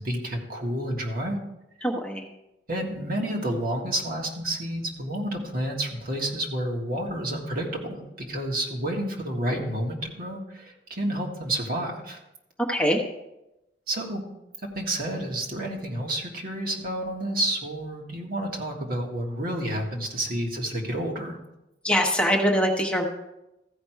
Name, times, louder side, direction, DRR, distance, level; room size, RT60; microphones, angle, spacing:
voice 1, 0.0-1.4 2.7-12.2 13.9-14.2 14.7-21.4, right 1 dB, 55° right, 0 dB, 1.7 m, -30 dB
voice 2, 1.8-2.3 12.7-13.0 21.8-23.0, equal, 5° left, 1 dB, 1.0 m, -23 dB
14.5 x 5.2 x 4.6 m, 0.91 s
head